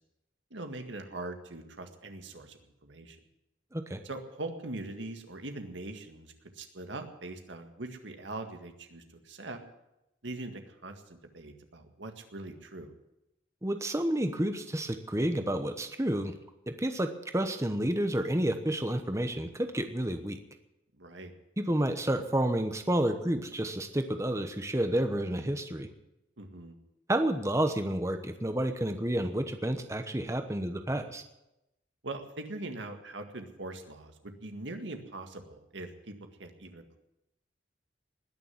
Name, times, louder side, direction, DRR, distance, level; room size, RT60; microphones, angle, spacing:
voice 1, 0.5-3.2 4.0-9.6 10.2-12.9 21.0-21.3 26.4-26.8 32.0-36.1 36.4-37.0, right 2 dB, 90° right, 6 dB, 1.9 m, -42 dB
voice 2, 13.6-16.3 16.7-20.4 21.6-25.9 27.1-31.2, right 1 dB, 15° right, 7 dB, 1.0 m, -30 dB
20.0 x 6.9 x 9.7 m, 0.89 s
head